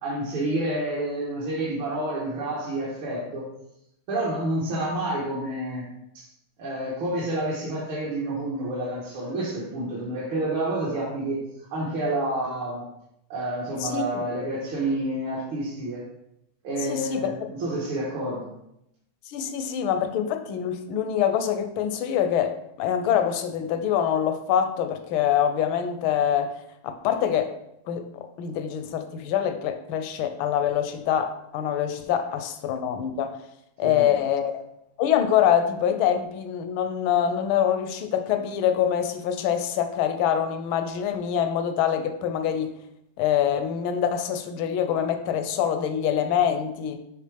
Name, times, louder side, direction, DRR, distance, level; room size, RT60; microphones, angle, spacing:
voice 1, 0.0-3.4 4.1-5.9 6.1-6.3 6.6-11.4 11.7-12.8 13.3-16.0 16.6-18.4 33.8-34.1, right 1 dB, 85° right, -7 dB, 2.2 m, -29 dB
voice 2, 16.9-17.3 19.3-26.5 26.8-27.5 27.9-33.4 33.8-34.6 35.0-42.7 43.2-47.0, left 9 dB, 85° left, 9 dB, 1.4 m, -25 dB
9.6 x 3.5 x 3.3 m, 0.81 s
omnidirectional pair, 2.2 m